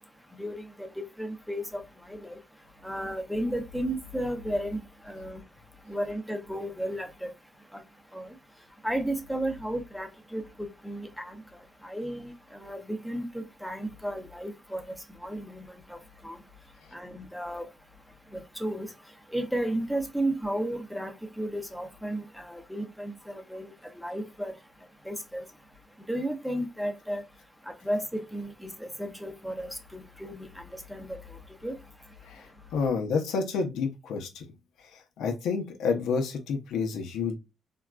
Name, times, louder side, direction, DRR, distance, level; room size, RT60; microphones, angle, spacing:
voice 1, 0.4-0.9 1.2-1.8 2.1-2.3 2.8-5.4 5.9-7.3 7.7-7.8 8.1-8.3 8.8-11.4 11.8-14.8 15.2-16.0 16.2-16.4 16.9-17.7 18.3-18.9 19.3-23.7 24.0-24.5 25.1-25.4 26.1-27.2 27.7-30.5 30.7-31.2 31.6-31.7, right 1 dB, ahead, 0.6 m, -33 dB
voice 2, 32.7-34.5 35.2-37.4, left 5 dB, 85° left, 0.7 m, -29 dB
3.6 x 2.2 x 2.3 m
cardioid pair, 90°, 0 cm